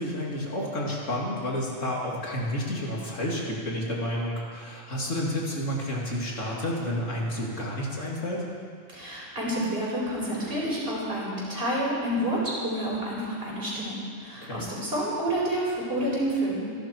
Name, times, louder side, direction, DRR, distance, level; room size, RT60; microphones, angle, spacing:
voice 1, 0.0-8.4 14.4-14.6, left 1 dB, 70° left, -3 dB, 3.0 m, -30 dB
voice 2, 8.9-16.7, right 1 dB, 45° right, -5 dB, 5.2 m, -29 dB
27.0 x 11.5 x 4.7 m, 2.2 s
omnidirectional pair, 1.3 m